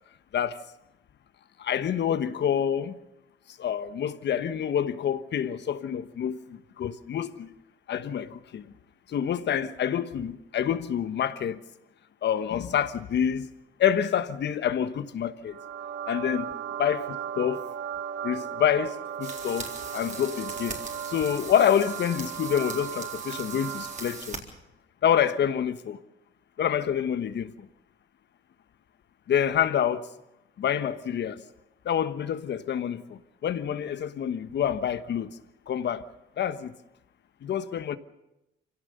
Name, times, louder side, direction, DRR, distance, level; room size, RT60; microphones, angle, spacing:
voice 1, 1.6-3.0 3.6-7.5 7.9-8.6 9.1-11.6 12.2-13.5 13.8-15.6 16.1-16.5 16.8-17.6 18.2-20.8 21.1-24.4 25.0-26.0 26.6-27.5 29.3-30.0 30.6-31.4 31.8-35.3 35.7-36.0 36.4-36.7 37.4-38.0, left 9 dB, 60° left, 1.2 m, -27 dB
sound 1, 15.5-24.3, right 9 dB, 65° right, 1.1 m, -36 dB
sound 2, 19.2-24.4, right 3 dB, 40° right, 3.9 m, -40 dB
25.0 x 17.0 x 6.8 m
cardioid pair, 90°, 20 cm